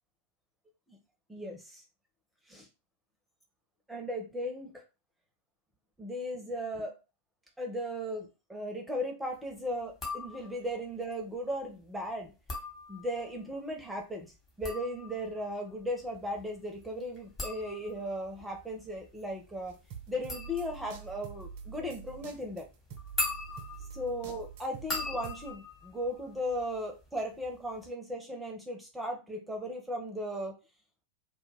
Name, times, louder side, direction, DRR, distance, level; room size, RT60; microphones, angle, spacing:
voice 1, 1.3-1.8 2.5-2.7 3.9-4.8 6.0-7.0 7.6-12.3 12.9-14.3 14.6-19.8 20.1-22.7 23.9-30.5, equal, 5° right, 1 dB, 0.6 m, -37 dB
sound 1, 9.9-10.8 12.3-13.4 14.4-27.1 27.4-27.9, left 3 dB, 20° left, 1.0 m, -41 dB
sound 2, 19.7-25.5, right 7 dB, 50° right, 0.4 m, -46 dB
2.2 x 2.2 x 3.2 m, 0.28 s
figure-of-eight pair, 90°, 0 cm